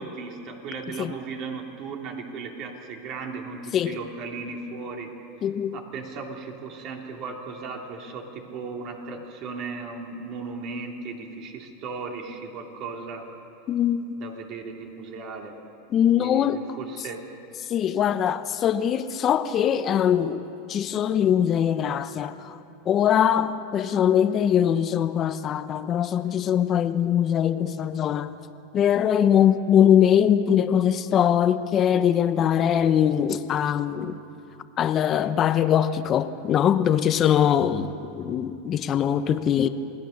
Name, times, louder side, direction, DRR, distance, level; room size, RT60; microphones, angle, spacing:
voice 1, 0.0-5.1 5.7-13.3 14.2-15.6 16.2-17.2, right 4 dB, 45° right, 3.0 m, -36 dB
voice 2, 5.4-5.8 13.7-14.2 15.9-16.6 17.7-22.6 22.9-28.3 28.7-34.2 34.8-39.7, left 9 dB, 30° left, 0.9 m, -22 dB
28.0 x 19.0 x 6.6 m
supercardioid pair, 135°, 0 cm